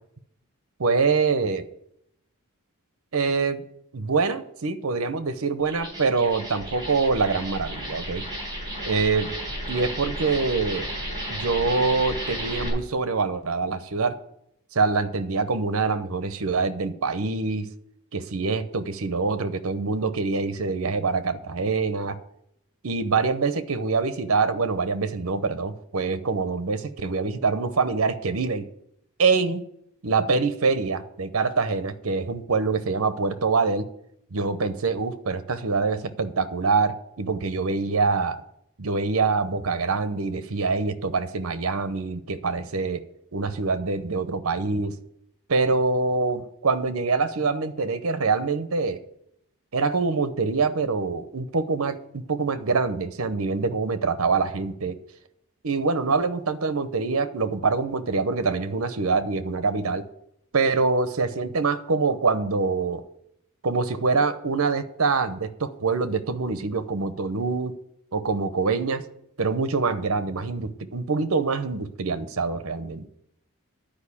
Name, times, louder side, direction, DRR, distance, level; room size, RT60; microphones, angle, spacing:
voice 1, 0.8-1.7 3.1-3.6 3.9-8.2 8.9-9.3 9.7-10.9 11.3-14.1 14.7-17.7 18.1-22.2 22.8-28.7 29.2-29.6 30.0-33.9 34.3-38.4 38.8-43.0 43.3-44.9 45.5-49.0 49.7-55.0 55.6-60.1 60.5-63.0 63.6-67.7 68.1-69.0 69.4-73.1, right 4 dB, 65° right, 11 dB, 0.8 m, -25 dB
sound 1, 5.6-12.7, equal, 20° right, 4.7 m, -33 dB
10.5 x 5.1 x 8.4 m, 0.75 s
head